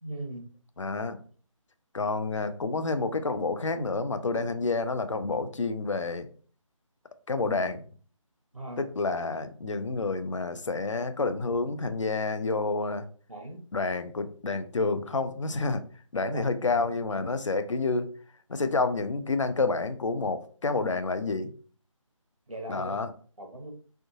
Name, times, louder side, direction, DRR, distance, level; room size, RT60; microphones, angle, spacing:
voice 1, 0.0-0.5 8.5-8.9 13.3-13.6 16.3-16.4 22.5-23.0 23.4-23.7, right 1 dB, 90° right, 3 dB, 1.1 m, -39 dB
voice 2, 0.8-1.2 1.9-6.3 7.3-7.8 8.8-13.1 13.7-15.8 16.1-18.1 18.5-21.5 22.7-23.1, left 3 dB, 65° left, 10 dB, 0.5 m, -29 dB
3.4 x 2.6 x 2.7 m, 0.43 s
figure-of-eight pair, 155°, 17 cm